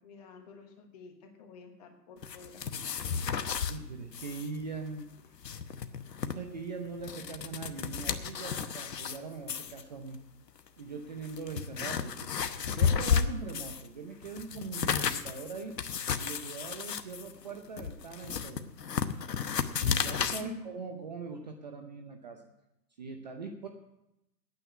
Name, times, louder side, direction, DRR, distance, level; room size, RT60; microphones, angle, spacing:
voice 1, 0.0-2.7 20.4-20.7, left 5 dB, 25° left, 4 dB, 1.3 m, -48 dB
sound 1, 2.2-3.8 4.1-4.5 4.7-4.8 5.2-6.3 6.9-9.2 9.5-9.8 10.6-10.7 11.2-13.9 14.2-20.4, left 7 dB, 75° left, 1.1 m, -32 dB
voice 2, 3.7-5.1 6.2-10.2 10.8-12.3 12.7-15.7 16.2-18.7 19.8-22.4 23.0-23.7, right 4 dB, 25° right, 4 dB, 0.7 m, -41 dB
9.2 x 9.1 x 9.5 m, 0.87 s
hypercardioid pair, 150°, 50 cm